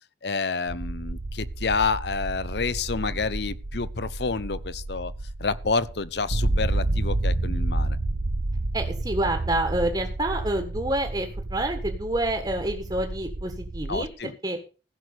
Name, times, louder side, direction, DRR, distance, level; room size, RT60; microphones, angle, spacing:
voice 1, 0.2-5.1 5.4-8.0 13.9-14.4, left 4 dB, 65° left, 0.8 m, -29 dB
sound 1, 0.7-14.1, right 2 dB, 65° right, 0.9 m, -30 dB
voice 2, 8.7-14.1 14.4-14.6, right 1 dB, 25° right, 1.6 m, -28 dB
15.5 x 6.4 x 6.7 m
head